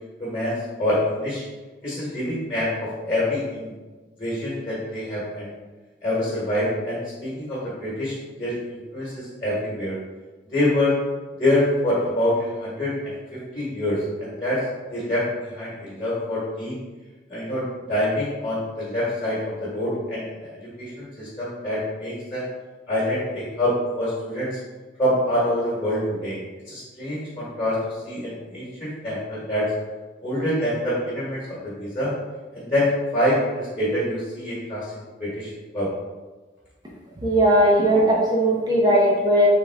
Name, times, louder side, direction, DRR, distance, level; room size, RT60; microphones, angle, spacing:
voice 1, 0.2-1.4 1.8-3.7 4.2-5.5 6.0-10.0 10.5-10.9 11.4-14.6 14.9-16.7 17.3-22.4 22.9-24.5 25.0-26.4 26.7-27.8 28.0-29.7 30.2-32.1 32.5-34.8 35.2-35.9, left 1 dB, 25° left, -8 dB, 1.4 m, -26 dB
voice 2, 37.2-39.5, equal, 20° right, -3 dB, 0.7 m, -18 dB
3.7 x 3.5 x 3.4 m, 1.3 s
head